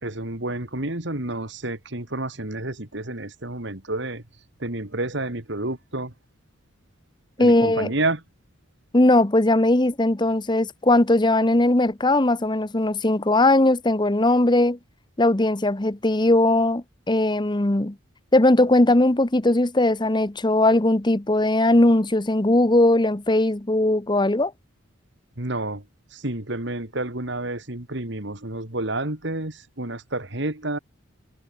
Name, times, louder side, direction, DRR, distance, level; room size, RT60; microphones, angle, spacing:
voice 1, 0.0-4.2 4.6-6.1 7.4-8.2 25.4-25.9 26.1-30.8, right 2 dB, 60° right, 2.7 m, -29 dB
voice 2, 7.4-7.9 8.9-14.8 15.2-18.0 18.3-24.5, left 1 dB, 20° left, 1.0 m, -19 dB
head